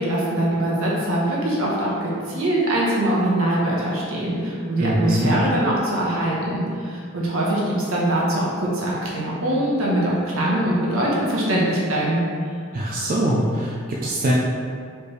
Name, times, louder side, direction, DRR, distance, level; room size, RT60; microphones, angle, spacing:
voice 1, 0.0-12.2, right 1 dB, 70° right, -4 dB, 1.0 m, -22 dB
voice 2, 4.8-5.3 12.7-14.3, right 1 dB, 40° right, -4 dB, 0.4 m, -22 dB
4.4 x 3.4 x 3.2 m, 2.2 s
head